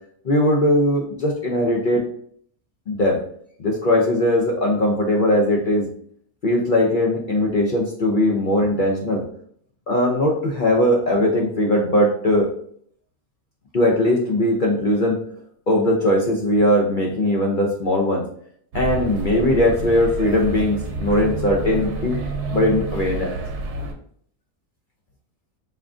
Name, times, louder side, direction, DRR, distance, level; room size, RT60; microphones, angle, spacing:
voice 1, 0.2-2.0 2.9-3.2 3.6-5.9 6.4-9.3 9.9-12.5 13.7-15.2 15.7-18.2 18.7-22.2 22.5-23.3, left 1 dB, 60° left, -1 dB, 0.5 m, -19 dB
sound 1, 18.7-23.9, right 3 dB, 80° right, 1.3 m, -29 dB
5.5 x 2.5 x 3.6 m, 0.63 s
omnidirectional pair, 1.7 m